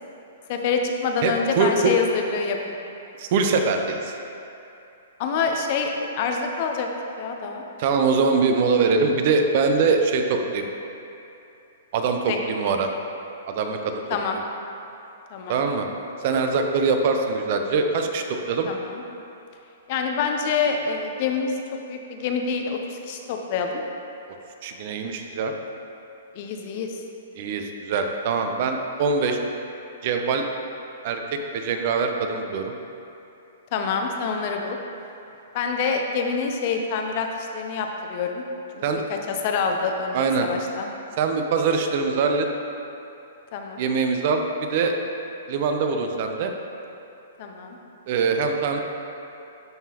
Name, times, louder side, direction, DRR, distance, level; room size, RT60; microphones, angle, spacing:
voice 1, 0.5-2.8 5.2-6.9 7.2-7.6 12.3-12.4 14.1-14.4 15.3-15.6 18.7-19.0 19.9-23.8 26.4-27.0 33.7-34.8 35.5-38.4 38.7-38.8 39.1-40.9 43.5-43.8 47.4-47.8, left 5 dB, 45° left, 3 dB, 0.6 m, -26 dB
voice 2, 1.2-1.9 3.2-4.2 7.8-10.7 11.9-12.9 13.5-14.0 15.5-15.9 16.2-18.7 24.6-25.5 27.4-29.4 30.0-30.5 31.0-32.7 38.8-39.0 40.1-40.5 41.2-42.5 43.8-44.9 45.5-46.5 48.1-48.8, right 4 dB, 50° right, 4 dB, 0.5 m, -23 dB
11.0 x 3.7 x 2.9 m, 2.8 s
hypercardioid pair, 145°, 0 cm